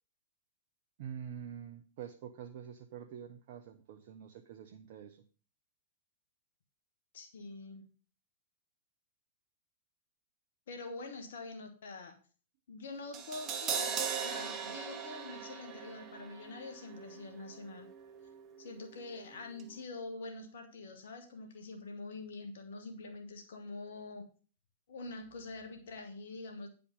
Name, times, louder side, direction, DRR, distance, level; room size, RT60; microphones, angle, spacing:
voice 1, 1.0-5.3, right 8 dB, 55° right, 5 dB, 0.8 m, -46 dB
voice 2, 7.1-7.9 10.7-12.2 12.7-17.9 18.6-24.3 24.9-26.7, left 3 dB, 65° left, 6 dB, 1.5 m, -45 dB
Crash cymbal, 13.1-19.3 19.6-19.7, right 7 dB, 30° right, 1.1 m, -40 dB
9.9 x 5.1 x 5.4 m, 0.38 s
figure-of-eight pair, 105°, 0 cm